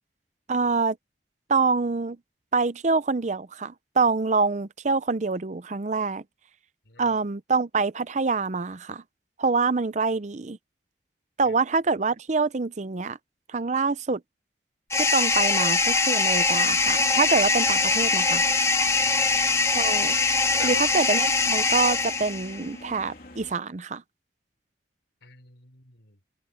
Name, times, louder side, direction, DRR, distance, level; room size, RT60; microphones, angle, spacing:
voice 1, 0.5-1.0 1.5-2.2 2.5-6.2 7.0-9.0 9.4-10.6 11.4-13.2 13.5-14.2 15.0-18.4 19.7-20.2 20.6-24.0, right 4 dB, 40° right, 0.6 m, -25 dB
voice 2, 6.8-7.1 11.4-11.5 18.9-19.8 20.5-20.9 25.2-26.2, left 2 dB, 70° left, 4.2 m, -44 dB
sound 1, 14.9-22.6, left 3 dB, 15° left, 1.0 m, -22 dB
sound 2, 16.5-23.5, left 1 dB, 50° left, 3.2 m, -45 dB
head